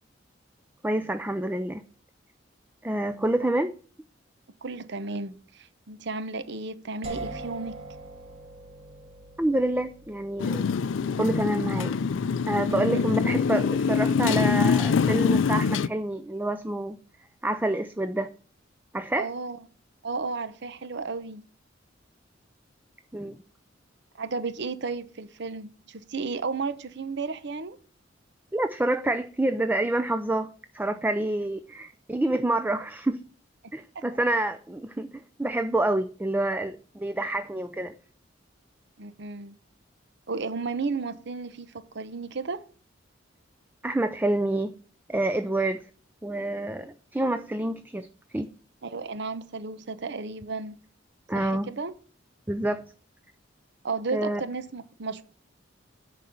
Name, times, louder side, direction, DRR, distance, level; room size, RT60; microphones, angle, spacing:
voice 1, 0.8-1.8 2.8-3.7 9.4-10.6 11.2-12.0 12.5-17.0 17.4-18.3 18.9-19.3 23.1-23.4 28.5-33.2 33.7-37.9 43.8-44.8 45.1-45.9 46.2-48.1 48.3-48.5 51.3-51.7 52.5-52.8 54.1-54.4, right 1 dB, 10° right, 0.4 m, -27 dB
voice 2, 4.6-7.8 12.7-13.0 19.2-19.6 20.0-21.4 24.1-27.8 33.9-34.0 39.0-39.5 40.3-42.6 48.8-50.8 51.3-51.9 53.8-55.2, right 4 dB, 65° right, 0.8 m, -33 dB
sound 1, 7.0-16.8, right 2 dB, 35° right, 1.8 m, -45 dB
Motorcycle, 10.4-15.9, left 5 dB, 80° left, 0.4 m, -24 dB
10.5 x 4.3 x 7.8 m
head